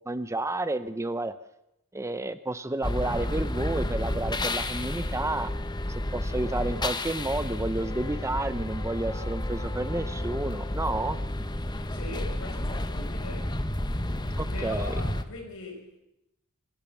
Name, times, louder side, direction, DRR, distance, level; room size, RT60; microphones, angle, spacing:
voice 1, 0.1-1.3 1.9-5.5 5.9-11.2 14.4-14.9, right 2 dB, 15° right, 0.7 m, -31 dB
sound 1, 2.8-15.2, left 1 dB, 20° left, 1.2 m, -31 dB
voice 2, 11.9-13.7 14.5-16.0, left 2 dB, 65° left, 5.8 m, -41 dB
25.0 x 16.0 x 7.2 m
head